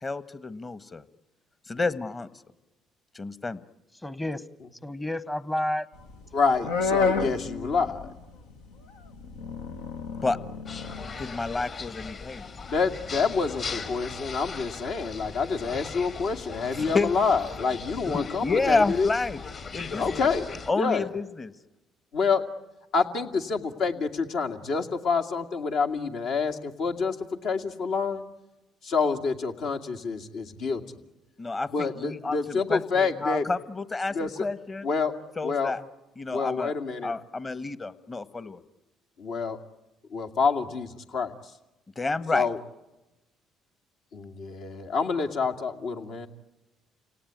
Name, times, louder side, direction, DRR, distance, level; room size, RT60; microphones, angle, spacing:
voice 1, 0.0-1.0 1.7-2.3 3.1-3.6 10.2-10.4 11.2-12.5 16.7-17.1 18.1-19.4 19.7-20.3 20.7-21.5 31.4-34.9 35.4-35.8 36.2-36.7 37.0-38.6 42.0-42.5, left 3 dB, 30° left, 15 dB, 1.4 m, -29 dB
voice 2, 4.0-4.4 4.8-5.9, left 1 dB, 15° left, 16 dB, 1.1 m, -30 dB
jurassic sound, 6.0-8.5 8.8-11.2, left 4 dB, 85° left, 1.6 m, -30 dB
voice 3, 6.3-8.1 12.7-19.1 20.0-21.1 22.1-22.4 22.9-27.2 27.4-28.2 28.8-30.8 31.7-33.5 34.1-34.5 34.8-35.1 35.4-35.8 36.3-37.1 39.2-39.6 40.1-41.3 42.3-42.6 44.1-46.3, left 5 dB, 65° left, 5 dB, 2.3 m, -27 dB
sound 1, 10.7-20.7, left 4 dB, 50° left, 3.8 m, -39 dB
29.5 x 18.0 x 9.5 m, 1.0 s
hypercardioid pair, 60°, 0 cm